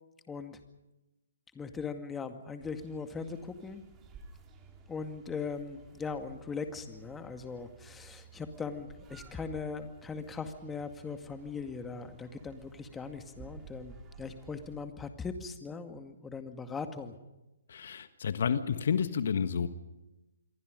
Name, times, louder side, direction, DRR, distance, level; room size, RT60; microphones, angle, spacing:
voice 1, 0.3-0.6 1.5-3.8 4.9-17.1, left 5 dB, 10° left, 7 dB, 2.1 m, -40 dB
Kids in Playground, 2.6-14.8, right 4 dB, 20° right, 3.4 m, -54 dB
voice 2, 17.7-19.7, left 7 dB, 60° left, 11 dB, 1.5 m, -30 dB
28.0 x 23.0 x 5.3 m, 0.99 s
figure-of-eight pair, 135°, 0 cm